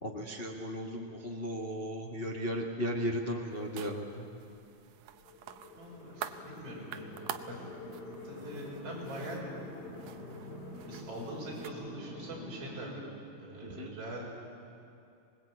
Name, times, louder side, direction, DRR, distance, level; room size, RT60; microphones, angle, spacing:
voice 1, 0.0-4.3 13.6-13.9, equal, 80° left, -1 dB, 0.5 m, -36 dB
sound 1, 3.5-11.7, right 10 dB, 70° right, 2.2 m, -47 dB
sound 2, 5.1-12.8, left 2 dB, 60° left, 5.4 m, -46 dB
voice 2, 5.7-7.7 8.2-9.6 10.9-13.0 13.4-14.3, right 1 dB, 40° right, -3 dB, 6.6 m, -43 dB
25.5 x 20.5 x 8.7 m, 2.6 s
omnidirectional pair, 4.2 m